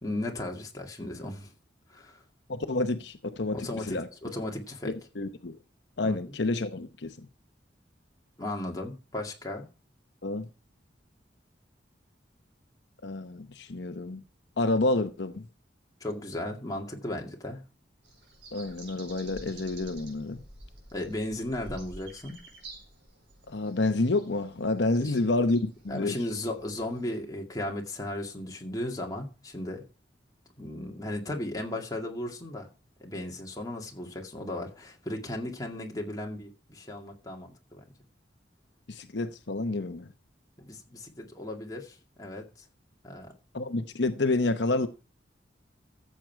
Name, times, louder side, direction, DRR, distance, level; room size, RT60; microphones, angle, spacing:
voice 1, 0.0-1.5 1.9-2.2 3.5-4.9 6.0-6.3 8.4-9.7 16.0-17.6 20.9-22.4 25.0-25.3 25.9-29.8 30.6-32.7 33.0-37.8 40.6-42.5 43.0-43.3, left 1 dB, 20° left, 2.2 m, -36 dB
voice 2, 2.5-3.6 3.8-4.1 4.8-5.6 6.0-7.3 10.2-10.5 13.0-14.2 14.6-15.5 18.5-20.4 23.5-26.2 38.9-40.1 43.5-44.9, left 2 dB, 65° left, 0.9 m, -29 dB
sound 1, 18.0-27.2, right 2 dB, 70° right, 4.7 m, -50 dB
14.0 x 7.6 x 4.6 m
head